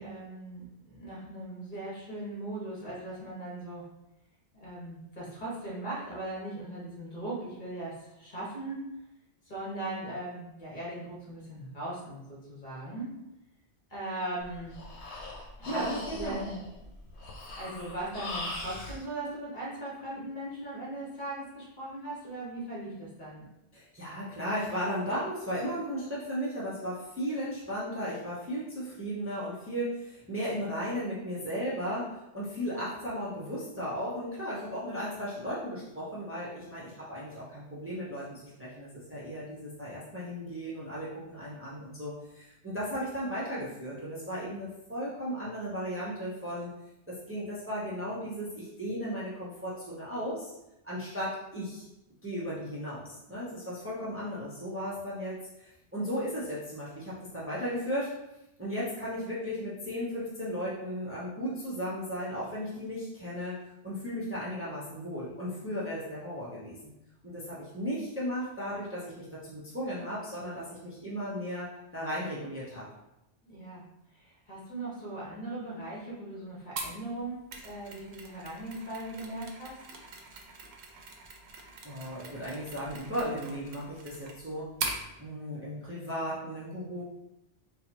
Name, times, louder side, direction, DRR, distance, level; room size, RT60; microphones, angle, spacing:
voice 1, 0.0-3.9 4.5-8.8 9.5-13.1 13.9-14.8 15.6-16.6 17.5-23.4 73.4-73.8 74.1-79.8, right 1 dB, 45° left, -6 dB, 1.4 m, -39 dB
Breathing, 14.4-19.0, left 2 dB, 80° left, 1.0 m, -41 dB
voice 2, 15.7-16.5 23.7-32.1 32.3-46.7 47.1-50.5 50.8-51.8 52.2-58.1 58.6-63.6 63.8-66.9 67.2-71.7 71.9-72.8 81.8-84.7 85.2-87.0, equal, 15° right, -8 dB, 0.7 m, -35 dB
Mechanisms, 76.8-85.0, right 3 dB, 75° right, 0.9 m, -42 dB
4.2 x 2.2 x 2.9 m, 0.91 s
omnidirectional pair, 1.1 m